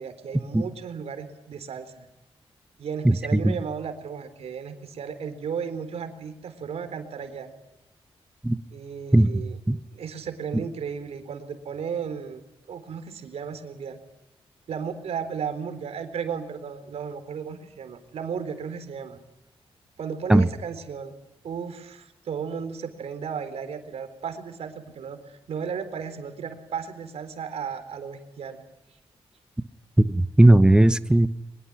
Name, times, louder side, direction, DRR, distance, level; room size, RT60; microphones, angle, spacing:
voice 1, 0.0-2.1 2.8-7.5 8.7-9.6 9.9-12.4 12.7-14.0 14.7-19.2 20.0-21.1 21.4-28.6, right 6 dB, 85° right, 9 dB, 3.9 m, -34 dB
voice 2, 3.0-3.5 8.4-8.6 9.1-9.3 9.7-9.8 20.3-20.5 30.1-31.3, right 1 dB, 10° right, 13 dB, 1.0 m, -17 dB
24.0 x 22.0 x 9.6 m, 0.95 s
wide cardioid pair, 140°, 10 cm